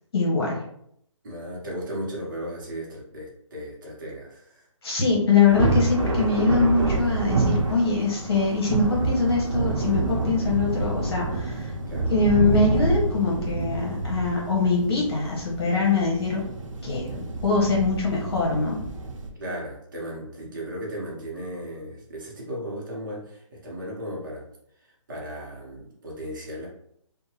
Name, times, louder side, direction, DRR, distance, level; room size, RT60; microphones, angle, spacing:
voice 1, 0.1-0.6 4.8-11.7 12.1-16.4 16.8-18.8, left 4 dB, 50° left, -3 dB, 1.2 m, -23 dB
voice 2, 1.2-4.7 11.9-12.1 19.4-24.5 25.1-26.7, equal, 40° right, -3 dB, 0.8 m, -36 dB
Thunder, 5.4-19.3, right 3 dB, 75° right, 0.6 m, -27 dB
2.8 x 2.2 x 2.8 m, 0.71 s
hypercardioid pair, 165°, 17 cm